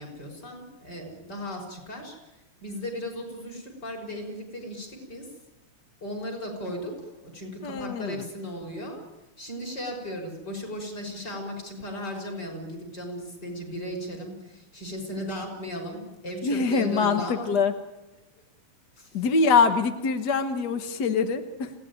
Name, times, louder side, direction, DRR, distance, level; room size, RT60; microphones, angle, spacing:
voice 1, 0.0-5.3 6.0-9.0 9.4-17.5 19.0-19.3, equal, 30° left, 1 dB, 6.2 m, -36 dB
voice 2, 7.6-8.3 16.4-17.7 19.1-21.7, left 5 dB, 60° left, 8 dB, 1.0 m, -24 dB
27.0 x 17.5 x 9.5 m, 1.0 s
omnidirectional pair, 3.5 m